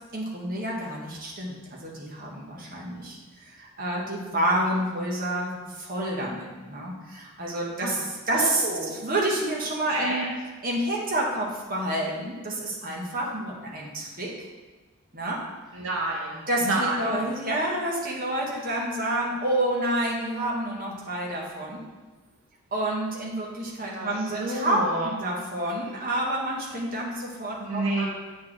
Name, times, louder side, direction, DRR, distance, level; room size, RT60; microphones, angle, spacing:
voice 1, 0.1-8.6 8.9-10.3 10.6-14.3 15.1-15.4 16.5-21.8 22.7-24.8 25.0-28.0, right 1 dB, 40° right, -3 dB, 1.5 m, -29 dB
voice 2, 8.3-8.9 9.9-10.3 15.7-17.2 23.9-25.1 27.6-28.0, right 2 dB, 70° right, -3 dB, 1.1 m, -29 dB
8.1 x 6.2 x 3.4 m, 1.2 s
head